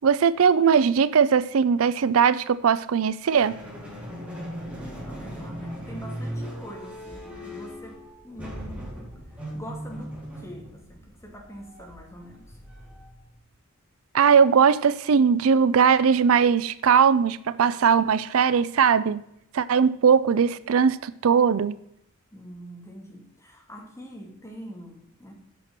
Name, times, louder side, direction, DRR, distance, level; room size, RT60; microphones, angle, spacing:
voice 1, 0.0-3.5 14.1-19.2 19.5-21.8, right 6 dB, 80° right, 16 dB, 0.5 m, -20 dB
sound 1, 3.3-13.4, equal, 5° right, 3.4 m, -38 dB
voice 2, 5.0-9.0 9.3-12.6 22.3-25.3, equal, 15° left, 0 dB, 2.4 m, -44 dB
9.0 x 6.7 x 5.9 m, 0.75 s
head